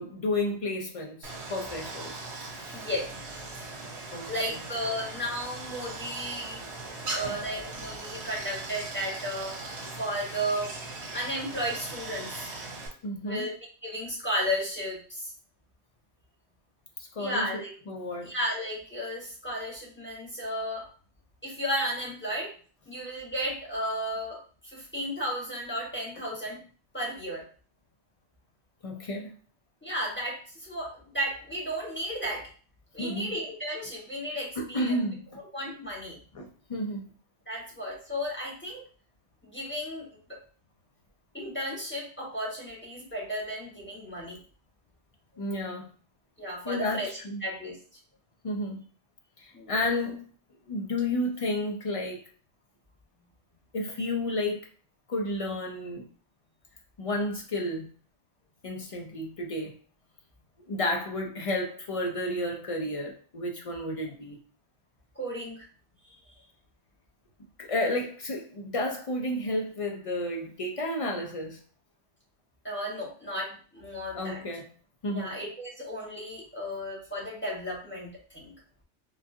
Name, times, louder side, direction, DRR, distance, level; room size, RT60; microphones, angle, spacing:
voice 1, 0.0-2.2 2.5-2.8 4.1-4.6 7.2-7.4 13.0-13.5 17.0-17.5 17.9-18.3 28.8-29.3 33.0-33.3 34.6-35.3 36.3-37.1 45.4-45.9 46.6-47.4 48.4-48.8 49.4-50.3 50.7-52.2 53.7-54.7 55.1-56.0 57.0-57.9 58.6-59.8 60.6-64.4 67.6-71.6 74.1-74.7 75.0-75.4, left 1 dB, 50° left, 1 dB, 0.4 m, -31 dB
Stream, 1.2-12.9, right 3 dB, 75° right, 1.1 m, -39 dB
voice 2, 2.7-3.9 4.2-6.6 7.0-9.6 10.0-10.7 11.1-12.5 13.2-13.5 13.8-15.3 17.2-17.7 18.2-20.9 21.4-22.5 22.9-26.6 26.9-27.4 29.8-32.5 32.9-35.0 35.3-36.2 37.5-38.8 39.4-40.4 41.3-44.4 46.4-47.1 47.4-47.8 49.5-49.7 65.1-65.7 66.0-66.3 72.6-74.4 75.1-78.5, equal, 10° left, -4 dB, 1.0 m, -34 dB
3.8 x 2.3 x 2.6 m, 0.41 s
omnidirectional pair, 1.1 m